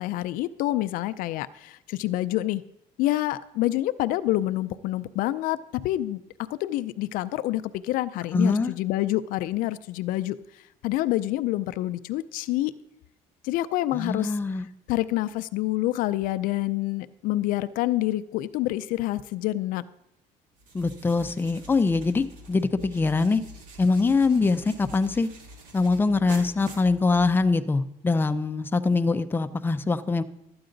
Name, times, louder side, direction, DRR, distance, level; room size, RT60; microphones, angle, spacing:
voice 1, 0.0-2.6 3.0-5.6 5.8-6.2 6.5-10.4 10.8-12.7 13.4-14.3 14.9-19.8, left 15 dB, 75° left, 13 dB, 0.4 m, -27 dB
voice 2, 8.3-8.7 13.9-14.7 20.7-23.4 23.8-25.3 25.7-30.2, left 3 dB, 15° left, 9 dB, 0.5 m, -23 dB
sound 1, 20.6-27.6, right 1 dB, 65° right, 2.4 m, -46 dB
13.0 x 8.7 x 3.9 m, 0.82 s
cardioid pair, 110°, 14 cm